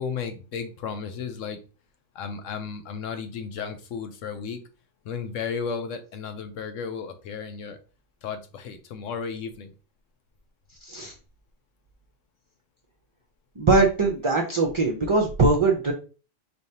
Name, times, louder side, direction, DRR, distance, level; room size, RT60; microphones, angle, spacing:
voice 1, 0.0-1.6 2.1-4.6 5.0-7.8 8.2-9.7, left 6 dB, 85° left, 8 dB, 1.1 m, -34 dB
voice 2, 13.6-15.9, right 3 dB, 40° right, 1 dB, 0.4 m, -21 dB
4.4 x 3.3 x 2.7 m, 0.35 s
omnidirectional pair, 1.3 m